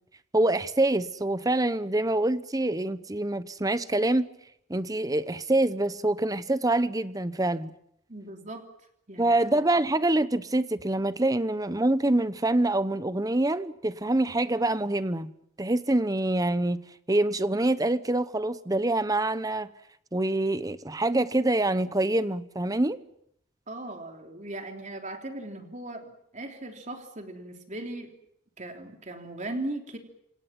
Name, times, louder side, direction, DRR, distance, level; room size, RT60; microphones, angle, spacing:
voice 1, 0.3-4.3 4.7-7.7 9.2-15.3 15.6-16.8 17.1-19.7 20.1-23.0, right 2 dB, 20° right, 14 dB, 0.9 m, -25 dB
voice 2, 8.1-8.7 9.1-9.6 23.7-28.1 28.6-30.0, right 2 dB, 35° right, 4 dB, 3.5 m, -38 dB
28.0 x 26.5 x 6.0 m, 0.74 s
head